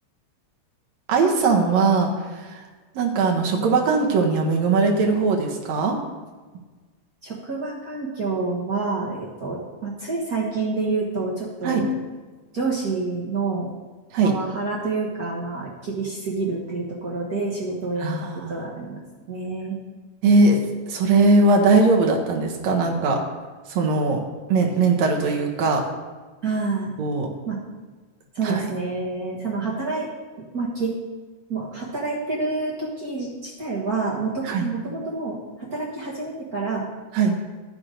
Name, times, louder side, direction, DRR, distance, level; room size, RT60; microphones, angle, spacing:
voice 1, 1.1-2.1 2.5-2.6 3.0-6.0 11.6-11.8 14.1-14.3 18.0-18.6 20.2-20.6 20.9-23.2 23.7-24.2 24.5-25.8 27.0-27.3 28.4-28.6 34.4-34.7 37.1-37.4, right 3 dB, 70° right, 1 dB, 2.2 m, -20 dB
voice 2, 7.2-11.8 12.5-13.7 14.2-18.2 18.5-19.0 19.3-19.8 26.4-26.9 27.5-27.6 28.3-30.1 30.5-30.9 31.5-36.8, right 3 dB, 45° right, -4 dB, 1.2 m, -28 dB
11.5 x 6.1 x 5.1 m, 1.3 s
omnidirectional pair, 3.4 m